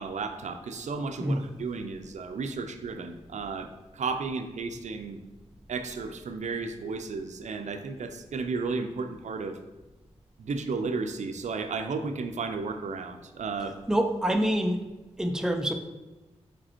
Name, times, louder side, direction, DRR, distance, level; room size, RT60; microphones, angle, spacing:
voice 1, 0.0-5.2 5.7-9.6 10.4-13.8, right 4 dB, 80° right, 7 dB, 0.5 m, -33 dB
voice 2, 13.9-14.8 15.2-15.7, right 1 dB, 5° right, 6 dB, 0.5 m, -26 dB
5.1 x 4.2 x 4.4 m, 1.1 s
wide cardioid pair, 110°, 12 cm